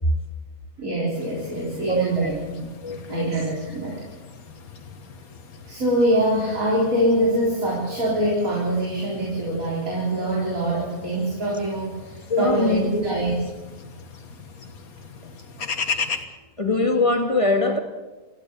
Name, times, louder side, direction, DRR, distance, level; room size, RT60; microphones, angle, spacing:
voice 1, 0.8-2.7 3.1-4.0 5.6-13.4, right 1 dB, 70° right, 4.4 m, -24 dB
sound 1, 1.1-16.3, left 5 dB, 85° left, 2.0 m, -38 dB
voice 2, 1.9-2.3 2.8-3.4 12.3-13.1 16.6-17.8, left 2 dB, 20° left, 2.1 m, -22 dB
26.5 x 15.5 x 7.0 m
omnidirectional pair, 1.5 m